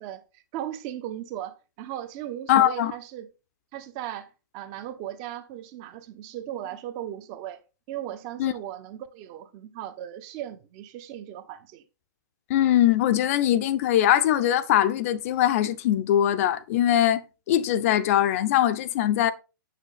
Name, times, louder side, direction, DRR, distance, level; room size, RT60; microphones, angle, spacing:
voice 1, 0.0-3.3 3.7-7.6 7.9-11.8, right 12 dB, 35° right, 1.2 m, -37 dB
voice 2, 2.5-2.9 8.4-8.5 12.5-19.3, left 11 dB, 45° left, 0.7 m, -22 dB
7.9 x 6.4 x 4.1 m
hypercardioid pair, 125°, 11 cm